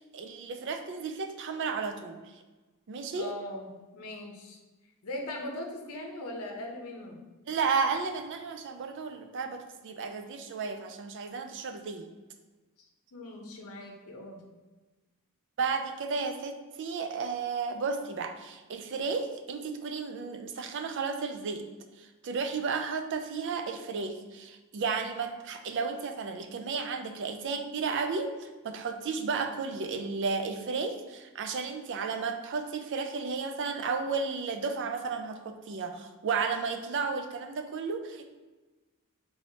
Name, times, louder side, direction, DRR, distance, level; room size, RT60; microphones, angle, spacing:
voice 1, 0.0-2.2 2.9-3.3 7.5-12.1 15.6-21.7 22.0-38.3, right 5 dB, 55° right, 6 dB, 0.4 m, -33 dB
voice 2, 3.2-4.6 5.0-7.2 13.1-14.4, left 1 dB, 85° left, 1 dB, 0.7 m, -40 dB
4.5 x 3.1 x 2.8 m, 1.2 s
head